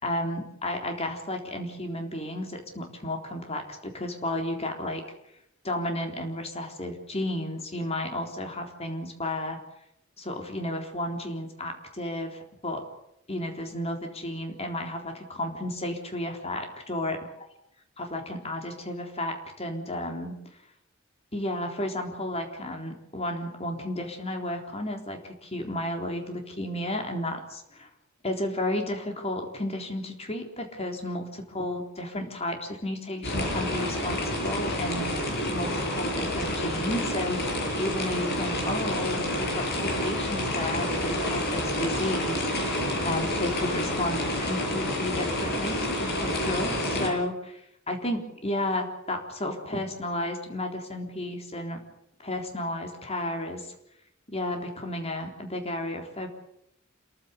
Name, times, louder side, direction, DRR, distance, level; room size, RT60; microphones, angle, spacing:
voice 1, 0.0-5.0 5.6-9.6 10.2-12.8 13.3-17.2 18.0-20.3 21.3-27.9 28.2-37.4 37.8-47.6 47.9-51.8 52.2-53.7 54.3-56.3, left 1 dB, 30° left, 4 dB, 3.8 m, -33 dB
sound 1, 33.2-47.1, left 1 dB, 55° left, 7.3 m, -29 dB
28.0 x 15.0 x 8.3 m, 0.78 s
head